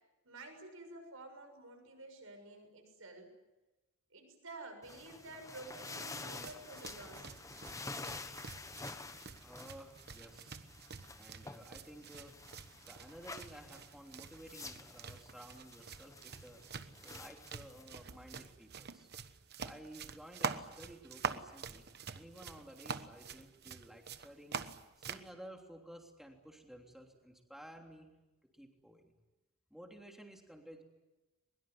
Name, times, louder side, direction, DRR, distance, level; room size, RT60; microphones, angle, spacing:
voice 1, 0.2-3.3 4.1-7.3, right 2 dB, 70° right, 5 dB, 6.6 m, -51 dB
sound 1, 4.8-18.5, left 3 dB, 15° left, 1.2 m, -49 dB
sound 2, 6.3-25.3, right 5 dB, 50° right, 1.2 m, -46 dB
voice 2, 9.4-10.5 11.1-12.4 12.8-16.6 17.0-19.1 19.6-21.9 22.1-24.6 25.0-28.1 28.5-29.1 29.7-30.8, right 1 dB, ahead, 2 dB, 3.2 m, -54 dB
23.0 x 22.0 x 9.6 m, 1.1 s
head